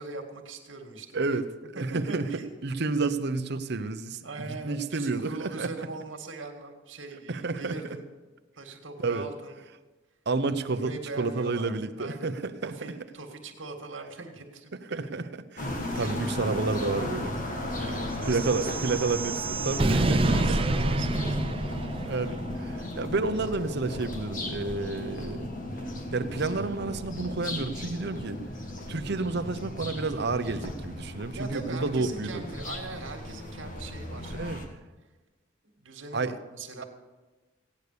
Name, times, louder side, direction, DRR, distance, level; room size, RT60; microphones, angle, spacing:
voice 1, 0.0-1.3 1.7-2.5 4.2-8.0 8.6-9.5 10.7-11.7 12.0-12.3 12.6-15.2 16.0-16.1 17.7-19.0 20.4-21.4 31.3-34.7 35.8-36.8, right 3 dB, 80° right, 4 dB, 2.0 m, -41 dB
voice 2, 1.1-2.3 2.6-5.7 7.3-7.7 9.0-9.3 10.3-10.9 11.2-12.7 14.9-17.3 17.6-17.8 18.3-20.6 22.1-25.5 26.1-28.4 28.9-32.4 34.3-34.6 36.1-36.3, right 3 dB, 60° right, 9 dB, 0.8 m, -30 dB
sound 1, 15.6-34.7, left 1 dB, 45° left, 1.7 m, -35 dB
sound 2, 18.2-22.5, right 2 dB, 30° right, 0.6 m, -28 dB
16.0 x 9.5 x 6.8 m, 1.2 s
head